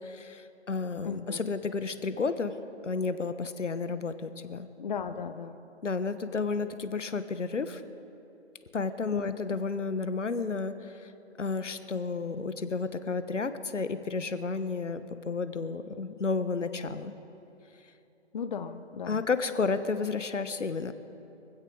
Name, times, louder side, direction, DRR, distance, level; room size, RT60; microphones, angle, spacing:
voice 1, 0.0-2.5 2.8-4.7 5.8-7.8 8.7-11.1 11.4-17.1 19.1-20.9, left 4 dB, 85° left, 11 dB, 1.2 m, -32 dB
voice 2, 1.0-1.4 4.8-5.6 9.1-9.5 18.3-19.2, left 6 dB, 40° left, 10 dB, 0.7 m, -36 dB
23.5 x 16.0 x 3.9 m, 2.8 s
figure-of-eight pair, 145°, 36 cm